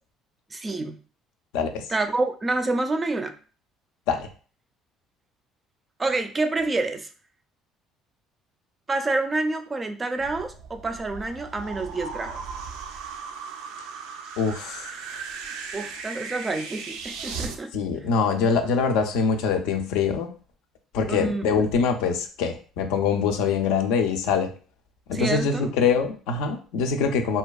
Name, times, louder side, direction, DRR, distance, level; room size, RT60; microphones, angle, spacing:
voice 1, 0.5-1.0 1.9-3.4 6.0-7.1 8.9-12.4 15.7-17.7 21.1-21.5 25.1-25.7, right 2 dB, 25° right, 7 dB, 0.4 m, -27 dB
voice 2, 1.5-1.9 4.1-4.3 14.4-14.9 17.7-20.3 20.9-24.5 25.1-27.4, left 5 dB, 85° left, 6 dB, 0.4 m, -24 dB
sound 1, 10.2-17.6, right 5 dB, 90° right, 0.4 m, -37 dB
2.7 x 2.3 x 2.3 m, 0.38 s
cardioid pair, 105°, 0 cm